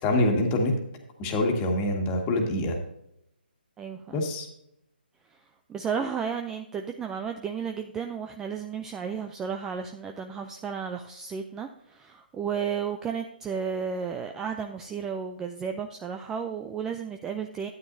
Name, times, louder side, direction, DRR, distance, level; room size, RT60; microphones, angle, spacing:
voice 1, 0.0-0.7 1.2-2.8 4.1-4.5, left 1 dB, 20° left, 2 dB, 1.7 m, -25 dB
voice 2, 3.8-4.2 5.7-17.7, right 6 dB, 10° right, 6 dB, 0.4 m, -33 dB
12.0 x 9.5 x 2.7 m, 0.79 s
hypercardioid pair, 155°, 6 cm